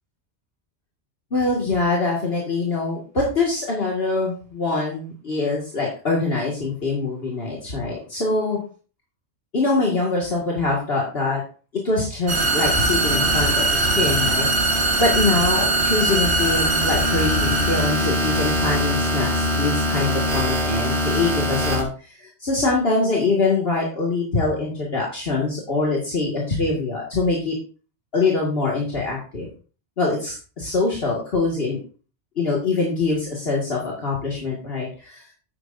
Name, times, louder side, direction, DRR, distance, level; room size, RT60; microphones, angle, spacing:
voice 1, 1.3-8.6 9.5-11.4 11.8-27.5 28.1-29.5 30.0-31.8 32.4-35.3, left 3 dB, 60° left, -3 dB, 2.2 m, -24 dB
sound 1, 12.3-21.8, right 1 dB, 65° right, 2.0 m, -21 dB
9.8 x 9.3 x 2.6 m, 0.37 s
omnidirectional pair, 1.2 m